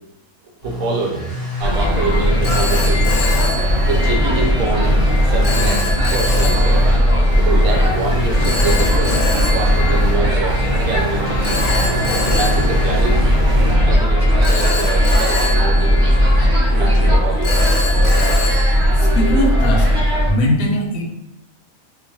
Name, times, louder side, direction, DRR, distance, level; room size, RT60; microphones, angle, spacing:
sound 1, 0.6-7.0 7.3-13.7, right 1 dB, 45° left, 1.1 m, -28 dB
voice 1, 0.6-1.2 1.6-3.2 3.8-4.9 5.2-5.8 6.1-6.8 7.3-9.2 9.5-11.6 12.2-13.2 13.8-16.0 16.7-17.6, right 3 dB, 75° right, -2 dB, 1.0 m, -25 dB
Telephone, 1.2-1.5 2.4-4.4 5.4-7.2 8.4-10.6 11.4-13.8 14.4-16.7 17.4-19.6, left 2 dB, 65° left, 0.4 m, -26 dB
sound 2, 1.6-20.3, equal, 30° right, 0.8 m, -16 dB
voice 2, 18.9-19.9 20.3-21.1, equal, 85° left, 0 dB, 1.1 m, -20 dB
2.9 x 2.1 x 2.6 m, 0.84 s
omnidirectional pair, 1.5 m